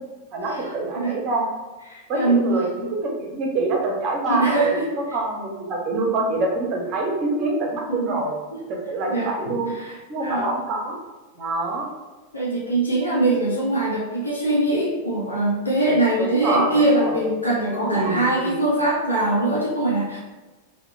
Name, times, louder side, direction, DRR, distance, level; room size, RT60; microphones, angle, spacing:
voice 1, 0.3-1.5 2.1-8.4 8.7-9.7 10.1-11.0 11.4-11.9 16.2-17.2 17.8-18.6, right 2 dB, 35° right, 0 dB, 0.7 m, -25 dB
voice 2, 1.9-2.6 4.3-4.9 7.9-8.2 8.5-8.7 9.1-10.5 12.3-20.2, right 2 dB, 80° left, -5 dB, 0.6 m, -22 dB
2.8 x 2.1 x 3.6 m, 1.2 s
figure-of-eight pair, 90°, 0 cm